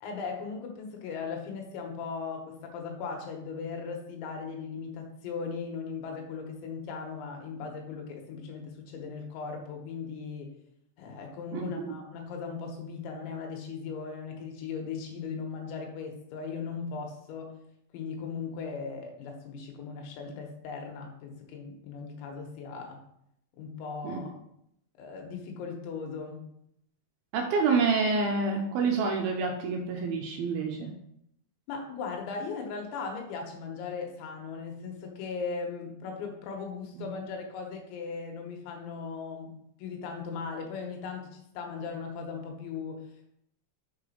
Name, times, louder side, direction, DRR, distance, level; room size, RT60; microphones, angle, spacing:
voice 1, 0.0-10.6 11.0-17.7 17.9-23.0 23.6-24.3 24.9-26.5 31.7-43.3, left 5 dB, 85° left, 3 dB, 3.3 m, -38 dB
voice 2, 11.5-11.9 24.0-24.2 27.3-30.9, right 4 dB, 80° right, 1 dB, 2.2 m, -28 dB
6.4 x 5.0 x 5.4 m, 0.75 s
omnidirectional pair, 5.3 m